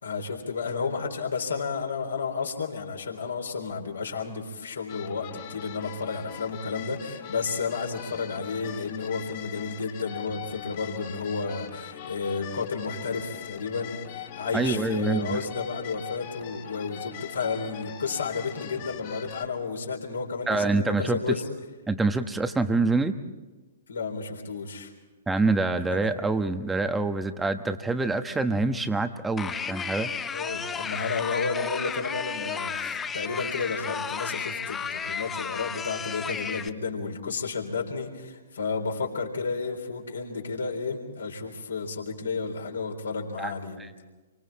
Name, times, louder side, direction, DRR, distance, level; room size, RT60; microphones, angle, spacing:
voice 1, 0.0-21.5 23.9-24.9 25.9-26.1 30.3-43.8, left 4 dB, 70° left, 2 dB, 3.9 m, -32 dB
sound 1, 4.9-19.5, left 10 dB, 45° left, 2.7 m, -41 dB
voice 2, 14.5-15.4 20.5-21.2 21.9-23.1 25.3-30.1 43.4-43.5 43.8-43.9, right 3 dB, 10° right, 9 dB, 1.3 m, -26 dB
sound 2, 29.4-36.7, left 6 dB, 15° left, 0.8 m, -33 dB
28.5 x 24.5 x 4.3 m, 1.2 s
figure-of-eight pair, 115°, 0 cm